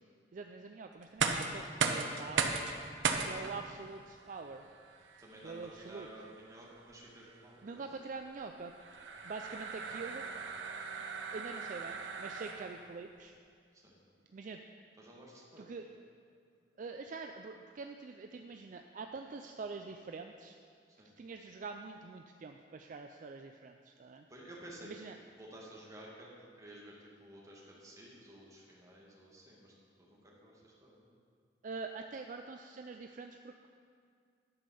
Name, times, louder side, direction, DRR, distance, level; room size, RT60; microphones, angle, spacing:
voice 1, 0.3-2.5 3.2-4.7 5.4-6.1 7.6-8.7 9.2-10.3 11.3-13.3 14.3-14.6 15.6-15.8 16.8-20.6 21.2-24.3 24.8-25.2 31.6-33.7, right 4 dB, 45° right, 5 dB, 0.4 m, -45 dB
sound 1, 1.0-12.9, right 5 dB, 85° right, 0.8 m, -38 dB
voice 2, 5.2-7.8 13.8-14.0 15.0-15.7 21.0-21.1 24.3-24.9 25.4-26.3 26.6-29.7 30.0-31.1, right 1 dB, 20° right, -4 dB, 1.9 m, -53 dB
11.0 x 5.4 x 6.8 m, 2.2 s
head